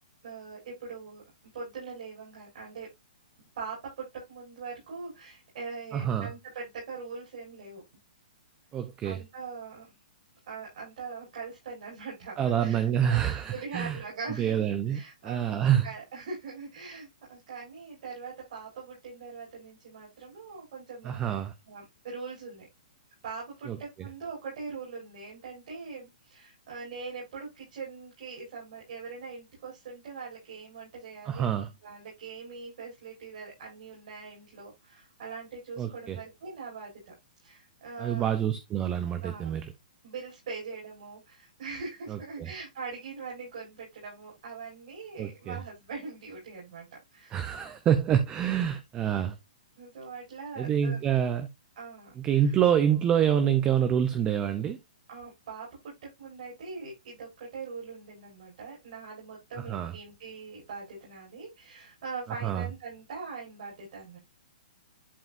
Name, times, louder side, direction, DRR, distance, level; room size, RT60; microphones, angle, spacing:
voice 1, 0.2-1.2 1.5-2.9 3.5-7.8 9.0-10.0 10.5-13.2 13.5-14.6 14.9-21.3 21.7-22.7 23.2-31.5 31.8-37.1 37.4-38.2 39.2-39.6 40.0-47.6 49.8-51.0 51.8-52.5 55.1-55.9 56.2-64.2, right 4 dB, 60° right, 6.0 m, -42 dB
voice 2, 5.9-6.3 8.7-9.2 12.4-14.0 14.4-15.9 21.0-21.5 23.7-23.8 31.2-31.7 35.8-36.2 38.0-39.7 42.1-42.5 45.2-45.6 47.3-49.4 50.6-51.5 52.2-54.8 59.6-59.9 62.4-62.7, right 9 dB, 20° right, 0.8 m, -27 dB
11.0 x 4.8 x 2.7 m
hypercardioid pair, 150°, 4 cm